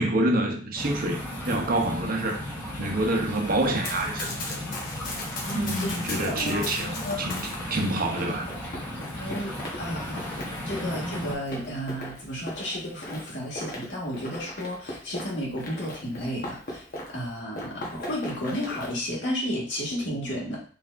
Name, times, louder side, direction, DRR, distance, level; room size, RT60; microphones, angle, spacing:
voice 1, 0.0-2.5 2.8-4.6 5.5-8.5, right 1 dB, 50° right, 2 dB, 0.8 m, -27 dB
sound 1, 0.8-11.3, left 1 dB, 10° left, 1.4 m, -35 dB
Run, 3.6-7.6 8.2-17.3 17.5-18.9, left 2 dB, 55° left, 1.2 m, -38 dB
voice 2, 5.4-7.3 9.1-10.4 10.6-16.8 17.1-20.6, equal, 90° left, -4 dB, 1.7 m, -33 dB
4.4 x 3.3 x 2.5 m, 0.40 s
head